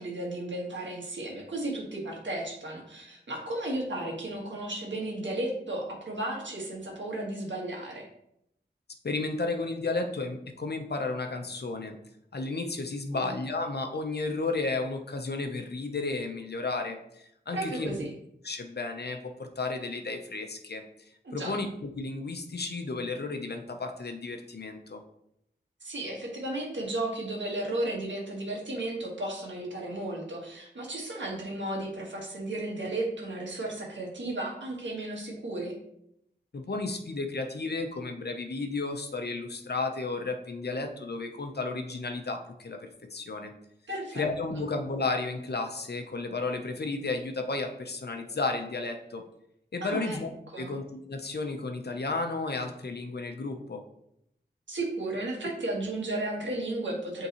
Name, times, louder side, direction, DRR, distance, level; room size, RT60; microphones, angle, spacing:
voice 1, 0.0-8.1 13.1-13.3 17.5-18.1 21.2-21.5 25.8-35.8 43.9-44.2 49.8-50.2 50.5-50.7 54.7-57.3, right 1 dB, 90° right, -2 dB, 1.7 m, -34 dB
voice 2, 9.0-11.9 12.3-18.0 18.4-20.8 21.3-21.7 22.0-25.0 36.5-43.5 44.1-49.2 49.7-50.3 50.6-53.8 55.4-55.5, left 3 dB, 60° left, 5 dB, 0.8 m, -33 dB
8.2 x 3.7 x 3.0 m, 0.77 s
wide cardioid pair, 70°, 19 cm